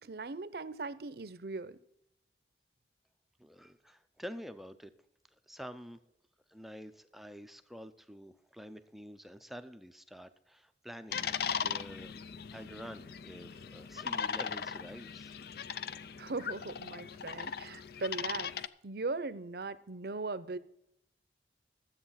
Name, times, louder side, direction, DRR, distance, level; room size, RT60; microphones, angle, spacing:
voice 1, 0.0-1.8 16.2-18.5 18.8-20.6, right 3 dB, 60° right, 0.7 m, -39 dB
voice 2, 3.4-4.9 5.5-6.0 6.5-11.3 11.6-12.1 12.5-15.3, equal, ahead, 0.5 m, -48 dB
sound 1, 11.1-18.7, left 7 dB, 60° left, 0.5 m, -38 dB
13.0 x 7.9 x 5.7 m
head